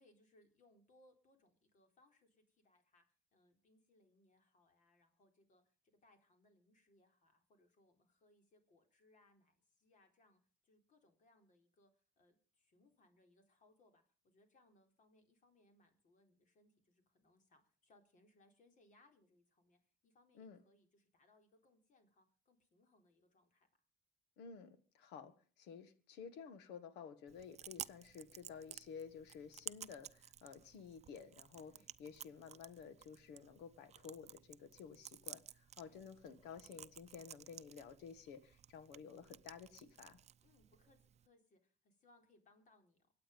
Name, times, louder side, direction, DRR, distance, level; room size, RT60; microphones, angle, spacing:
voice 1, 0.0-3.0 3.3-5.7 6.0-23.7 31.5-31.9 35.9-36.1 40.4-43.1, left 2 dB, 50° left, 6 dB, 4.2 m, -72 dB
voice 2, 24.4-31.7 32.0-40.2, left 6 dB, 90° left, 13 dB, 1.8 m, -53 dB
Chewing mastication, 27.3-41.3, right 9 dB, 40° right, 0.7 m, -55 dB
24.5 x 8.8 x 5.4 m, 0.39 s
cardioid pair, 110°, 17 cm